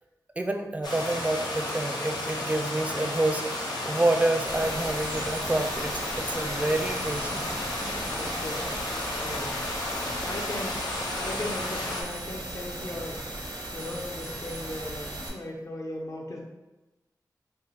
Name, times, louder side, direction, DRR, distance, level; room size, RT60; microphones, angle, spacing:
voice 1, 0.4-7.4, right 2 dB, 20° right, 5 dB, 0.4 m, -28 dB
sound 1, 0.8-12.0, left 1 dB, 85° left, 0.7 m, -33 dB
sound 2, 4.5-15.3, right 1 dB, 90° right, 0.8 m, -38 dB
voice 2, 7.3-8.9 9.2-9.5 10.2-10.8 11.2-13.2 13.7-16.4, left 1 dB, 50° left, -1 dB, 0.5 m, -38 dB
2.6 x 2.4 x 4.0 m, 1.1 s
wide cardioid pair, 60°, 7 cm